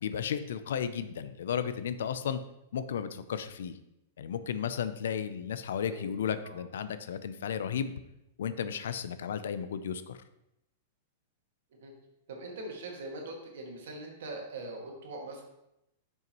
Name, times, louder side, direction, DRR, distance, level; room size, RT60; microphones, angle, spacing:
voice 1, 0.0-2.4 2.7-3.8 4.2-7.9 8.4-10.2, left 8 dB, 80° left, 12 dB, 0.5 m, -34 dB
voice 2, 12.3-15.4, right 2 dB, 70° right, 1 dB, 1.8 m, -42 dB
9.2 x 5.6 x 3.0 m, 0.86 s
supercardioid pair, 170°, 0 cm